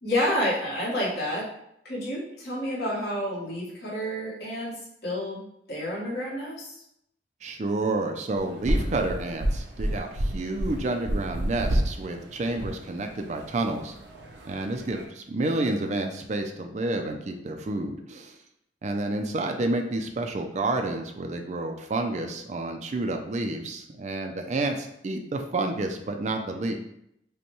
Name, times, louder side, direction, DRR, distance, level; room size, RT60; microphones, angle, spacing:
voice 1, 0.0-1.5 1.8-4.7 5.0-6.8, equal, 65° left, -6 dB, 1.5 m, -29 dB
voice 2, 7.4-13.9 14.4-18.4 18.8-26.7, right 2 dB, 40° right, 5 dB, 0.4 m, -29 dB
sound 1, 8.4-15.0, right 1 dB, 85° right, 0.7 m, -30 dB
5.2 x 2.2 x 3.0 m, 0.77 s
head